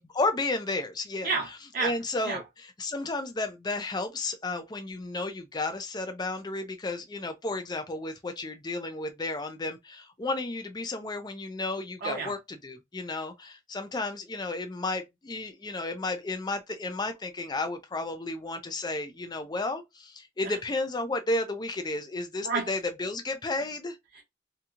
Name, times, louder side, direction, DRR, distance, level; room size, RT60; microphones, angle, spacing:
voice 1, 0.1-1.3 1.8-2.4 2.8-24.0, left 2 dB, 20° left, 0.4 m, -32 dB
voice 2, 1.2-1.9 2.2-2.4 12.0-12.3 20.4-20.6 22.4-22.7 24.1-24.2, right 4 dB, 50° right, 0.7 m, -31 dB
2.8 x 2.7 x 2.4 m
head